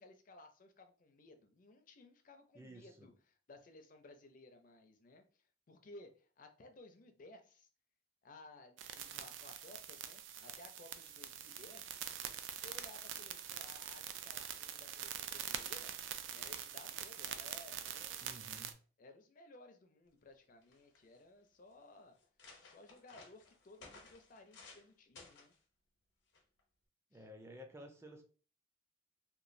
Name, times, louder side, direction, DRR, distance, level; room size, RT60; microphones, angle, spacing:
voice 1, 0.0-7.7 8.2-12.0 12.5-16.0 16.3-18.6 19.0-22.2 22.6-25.5 27.1-27.3, left 2 dB, 45° left, 7 dB, 0.4 m, -58 dB
voice 2, 2.5-3.1 18.2-18.8 27.1-28.2, equal, 15° right, 4 dB, 0.4 m, -53 dB
sound 1, 8.8-18.7, right 9 dB, 90° right, 0.3 m, -45 dB
sound 2, 20.3-20.4 20.6-21.2 21.8-21.9 22.2-24.9 25.2-25.6 26.3-26.6, left 3 dB, 90° left, 0.8 m, -58 dB
3.0 x 2.3 x 2.5 m, 0.39 s
head